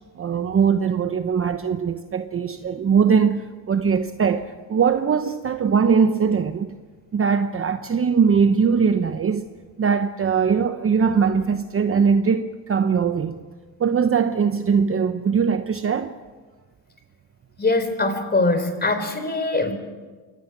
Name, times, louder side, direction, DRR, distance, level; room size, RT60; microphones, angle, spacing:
voice 1, 0.2-6.7 7.1-9.5 9.8-13.4 13.8-16.1, right 6 dB, 25° right, 1.0 m, -21 dB
voice 2, 17.6-19.7, left 2 dB, 20° left, 4.1 m, -22 dB
27.5 x 23.5 x 6.1 m
cardioid pair, 105°, 48 cm